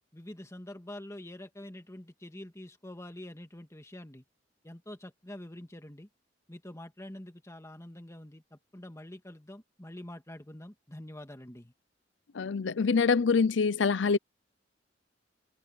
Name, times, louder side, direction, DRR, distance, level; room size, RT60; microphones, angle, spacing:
voice 1, 0.1-4.2 4.6-6.1 6.5-11.7, left 1 dB, 15° left, 1.8 m, -46 dB
voice 2, 12.3-14.2, left 5 dB, 75° left, 0.5 m, -25 dB
head